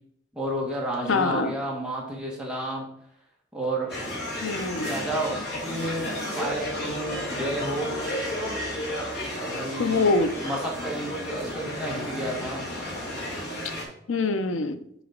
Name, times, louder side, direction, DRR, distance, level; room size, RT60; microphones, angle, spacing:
voice 1, 0.3-2.9 3.5-4.0 4.8-8.1 9.3-10.1 10.4-10.6 10.8-12.6, right 1 dB, 5° right, -3 dB, 1.6 m, -31 dB
voice 2, 1.1-1.5 4.4-4.9 9.8-10.4 14.1-14.8, left 3 dB, 85° left, 10 dB, 0.6 m, -24 dB
sound 1, 3.9-13.8, left 1 dB, 55° left, 2.4 m, -32 dB
5.0 x 4.9 x 5.2 m, 0.72 s
head